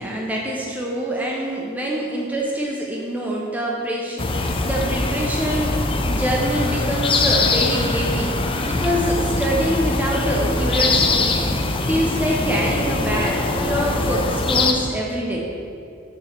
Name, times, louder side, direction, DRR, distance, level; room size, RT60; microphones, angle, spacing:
voice 1, 0.0-8.4 8.6-11.6 11.9-15.6, equal, 10° right, -3 dB, 0.7 m, -25 dB
sound 1, 4.2-14.7, left 2 dB, 25° left, 0.5 m, -22 dB
6.6 x 4.6 x 6.8 m, 2.5 s
head